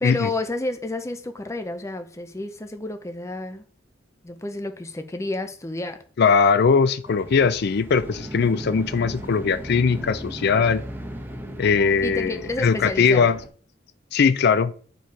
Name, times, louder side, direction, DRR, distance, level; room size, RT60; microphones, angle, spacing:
voice 1, 0.0-3.7 4.2-6.0 12.0-13.3, left 2 dB, 15° left, 0.6 m, -30 dB
voice 2, 6.2-10.8 11.6-13.4 14.1-14.7, left 5 dB, 60° left, 0.4 m, -20 dB
sound 1, 7.0-13.5, right 1 dB, 10° right, 1.0 m, -37 dB
8.7 x 4.7 x 4.6 m
head